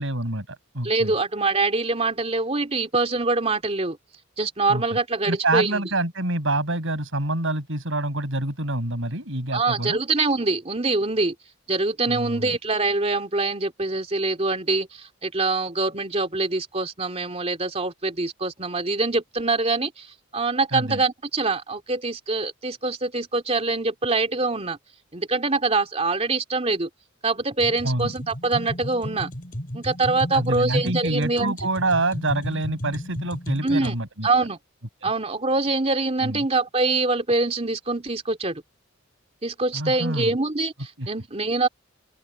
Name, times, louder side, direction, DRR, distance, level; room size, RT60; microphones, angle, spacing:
voice 1, 0.0-1.1 4.7-4.8 5.3-10.0 12.1-12.6 20.7-21.0 27.8-28.1 30.3-34.3 35.0-35.1 36.2-36.4 39.7-40.3 41.0-41.1, right 2 dB, 65° right, 7.0 m, -26 dB
voice 2, 0.8-4.0 4.4-5.8 9.5-11.3 11.7-20.1 20.3-24.8 25.1-26.9 27.2-29.3 29.7-31.6 33.6-33.9 34.2-34.6 35.0-38.6 39.4-41.7, right 3 dB, 30° right, 2.9 m, -24 dB
sound 1, 27.6-33.9, equal, 40° left, 5.5 m, -34 dB
open air
head